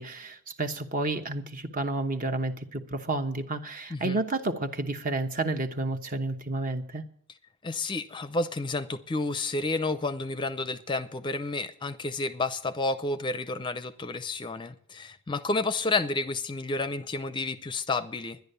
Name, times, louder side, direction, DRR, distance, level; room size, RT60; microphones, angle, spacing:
voice 1, 0.0-7.0, right 2 dB, 40° right, 1.0 m, -31 dB
voice 2, 7.6-18.4, left 3 dB, 25° left, 0.5 m, -30 dB
11.5 x 10.5 x 6.7 m
head